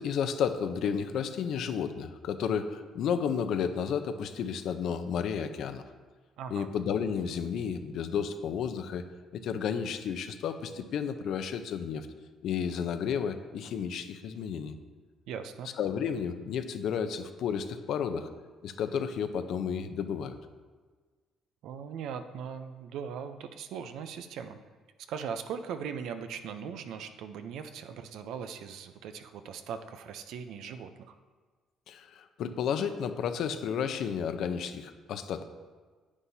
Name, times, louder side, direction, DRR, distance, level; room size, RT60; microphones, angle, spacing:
voice 1, 0.0-5.8 6.5-9.0 9.3-12.1 12.4-14.8 15.8-18.3 18.6-20.4 31.9-35.5, left 7 dB, 70° left, 9 dB, 0.7 m, -32 dB
voice 2, 6.4-6.7 15.3-15.7 21.6-24.6 25.1-31.1, right 7 dB, 75° right, 8 dB, 0.6 m, -39 dB
9.8 x 9.7 x 2.8 m, 1.4 s
cardioid pair, 85°, 0 cm